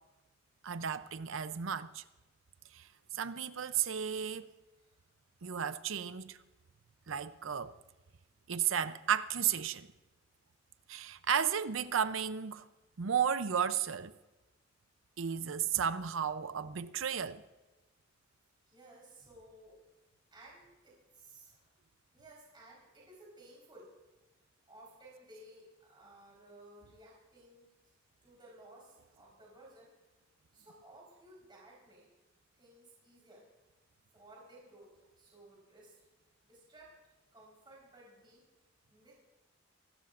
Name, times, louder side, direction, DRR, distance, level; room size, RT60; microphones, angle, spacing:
voice 1, 0.6-2.0 2.7-2.9 3.1-4.5 5.4-6.4 7.1-7.7 8.5-9.9 10.9-12.7 13.0-14.1 15.2-17.4, right 8 dB, 80° right, 0.6 m, -33 dB
voice 2, 18.7-19.8 20.3-21.7 22.1-23.9 24.7-27.7 28.2-29.9 30.5-32.1 32.5-33.5 34.1-36.0 36.4-36.9 37.3-38.4 38.9-39.1, right 1 dB, 25° right, 4.3 m, -57 dB
26.0 x 13.0 x 2.5 m
head